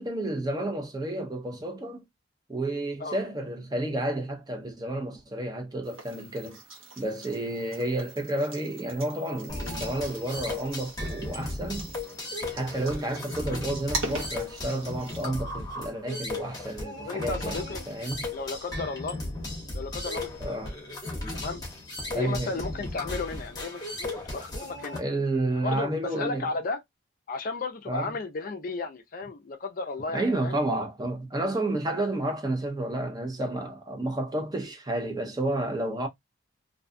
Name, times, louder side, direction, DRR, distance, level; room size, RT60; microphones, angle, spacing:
voice 1, 0.0-2.0 2.5-6.6 7.0-11.9 12.5-18.2 20.4-20.8 22.1-22.6 25.0-26.5 27.9-28.1 30.1-36.1, right 1 dB, 20° right, 0.5 m, -31 dB
sound 1, 5.8-15.3, right 2 dB, 75° right, 1.0 m, -41 dB
sound 2, 9.5-25.0, left 2 dB, 20° left, 0.9 m, -36 dB
voice 2, 17.0-17.8 18.3-19.2 19.7-20.3 21.3-21.6 22.1-25.0 25.6-26.8 27.3-30.5, left 3 dB, 40° left, 0.4 m, -34 dB
2.6 x 2.2 x 2.4 m
head